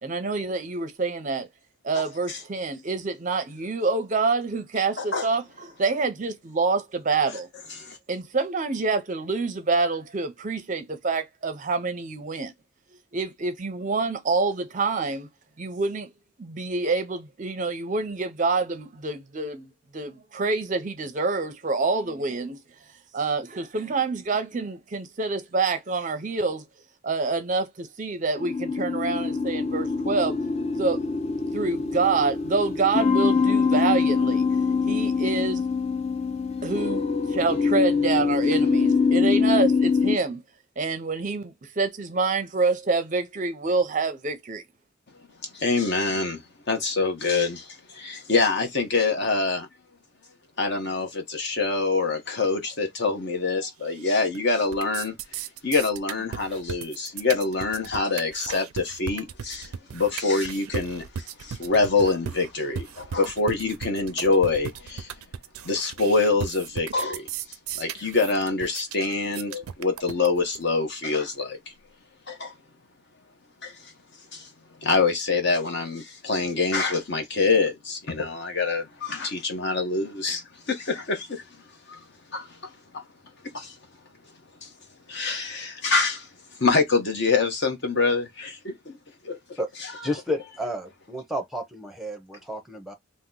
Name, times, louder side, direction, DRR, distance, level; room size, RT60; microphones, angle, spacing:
voice 1, 0.0-1.5 1.8-7.5 8.1-12.5 13.1-15.3 15.6-16.1 16.4-19.7 19.9-22.6 23.1-26.6 27.0-30.4 30.8-31.0 31.5-34.5 34.9-35.9 36.6-40.4 40.8-44.6, right 4 dB, 35° right, 0.5 m, -27 dB
voice 2, 1.9-2.4 5.0-5.3 7.8-8.0 45.5-46.4 46.7-49.7 50.6-55.1 55.6-65.1 65.6-67.3 67.8-71.6 72.3-72.5 73.6-73.9 74.3-74.5 74.8-81.4 81.9-82.0 82.3-83.0 83.5-83.8 84.6-84.7 85.1-86.3 86.6-89.0 89.2-89.6, left 3 dB, 50° left, 0.9 m, -25 dB
sound 1, 28.4-40.2, left 5 dB, 30° left, 0.4 m, -24 dB
sound 2, 53.9-54.4 54.6-70.6, right 7 dB, 90° right, 0.4 m, -36 dB
voice 3, 90.0-92.9, equal, ahead, 0.7 m, -31 dB
2.9 x 2.1 x 3.7 m
head